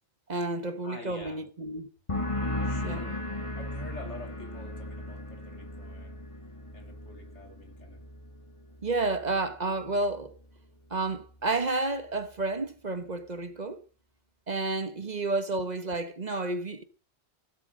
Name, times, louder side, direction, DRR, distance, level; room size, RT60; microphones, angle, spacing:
voice 1, 0.3-1.9 2.7-3.1 8.8-10.3 10.9-13.8 14.5-16.8, right 2 dB, 40° right, 1.2 m, -31 dB
voice 2, 0.8-1.4 2.6-3.3 3.6-6.2 6.7-8.0 14.9-15.1, left 2 dB, 90° left, 3.1 m, -47 dB
sound 1, 2.1-9.5 9.8-10.4, left 1 dB, 25° left, 1.9 m, -36 dB
16.5 x 7.8 x 6.3 m
omnidirectional pair, 1.2 m